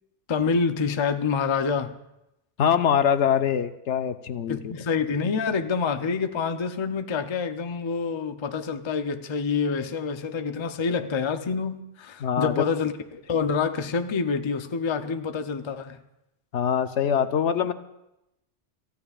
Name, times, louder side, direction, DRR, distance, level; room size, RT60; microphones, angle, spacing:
voice 1, 0.3-2.0 4.5-16.0, left 5 dB, 35° left, 0.5 m, -27 dB
voice 2, 2.6-4.7 12.2-12.7 16.5-17.7, left 8 dB, 75° left, 1.0 m, -23 dB
28.0 x 14.5 x 2.4 m
omnidirectional pair, 1.2 m